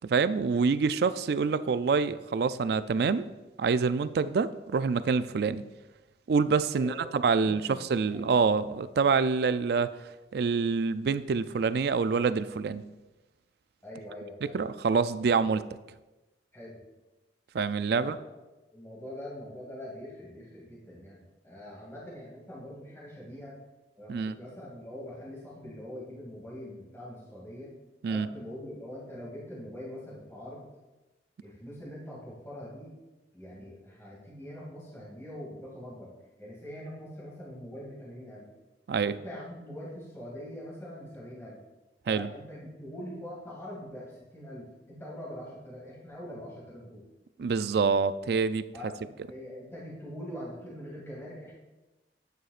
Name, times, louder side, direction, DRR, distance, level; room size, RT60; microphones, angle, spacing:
voice 1, 0.0-3.3 3.6-5.6 6.3-9.9 10.3-12.8 14.5-15.6 17.5-18.1 24.1-24.3 28.0-28.3 38.9-39.1 42.1-42.3 47.4-48.7, right 5 dB, 60° right, 14 dB, 0.3 m, -26 dB
voice 2, 6.7-7.1 7.4-8.2 13.8-14.6 16.5-16.8 17.9-18.3 18.7-23.6 24.0-27.7 28.1-30.6 31.4-32.9 33.3-36.1 36.4-38.4 39.1-41.6 42.0-47.0 48.7-51.5, equal, 15° left, -7 dB, 2.4 m, -43 dB
11.0 x 9.3 x 2.5 m, 1.1 s
head